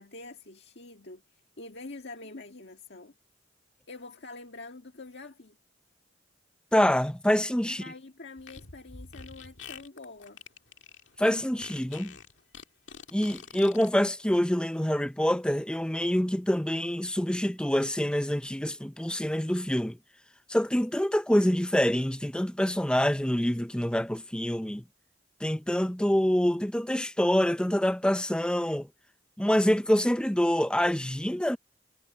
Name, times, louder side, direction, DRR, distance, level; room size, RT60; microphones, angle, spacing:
voice 1, 0.0-3.2 3.9-5.6 7.7-10.4, left 2 dB, 65° left, 1.9 m, -45 dB
voice 2, 6.7-7.8 11.2-12.1 13.1-20.0 20.5-24.8 25.4-28.9 29.4-31.6, equal, 5° left, 0.7 m, -26 dB
Fart, 8.4-13.9, left 6 dB, 85° left, 2.1 m, -46 dB
head